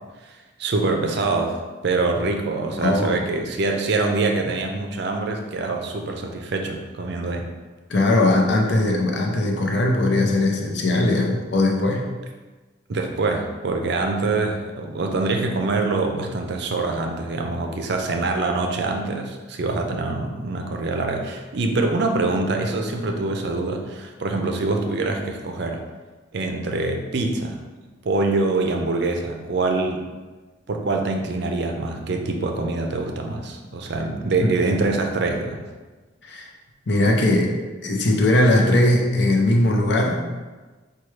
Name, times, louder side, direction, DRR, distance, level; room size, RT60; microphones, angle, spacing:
voice 1, 0.6-1.6 1.8-7.5 12.9-25.8 26.3-27.6 28.0-30.0 30.7-35.7, right 3 dB, 55° right, 3 dB, 0.5 m, -24 dB
voice 2, 2.8-3.2 7.9-12.1 36.2-36.5 36.9-37.5 37.8-40.2, left 1 dB, 60° left, 1 dB, 0.6 m, -19 dB
5.7 x 2.3 x 3.1 m, 1.3 s
head